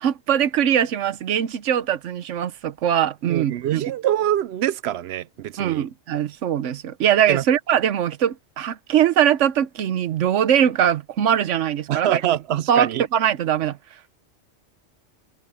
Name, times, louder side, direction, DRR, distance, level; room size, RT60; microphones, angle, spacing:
voice 1, 0.0-3.8 5.6-12.2 12.7-13.8, right 9 dB, 90° right, 1.1 m, -21 dB
voice 2, 3.3-5.9 7.3-7.4 11.9-13.0, right 11 dB, 70° right, 0.8 m, -24 dB
omnidirectional pair, 1.2 m